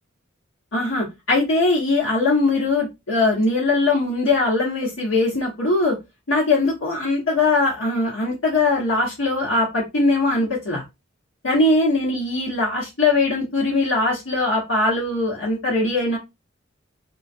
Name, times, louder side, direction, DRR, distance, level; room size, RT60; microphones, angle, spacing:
voice 1, 0.7-6.0 6.3-10.8 11.4-16.2, left 2 dB, 85° left, -5 dB, 1.4 m, -21 dB
3.6 x 2.4 x 2.7 m, 0.22 s
head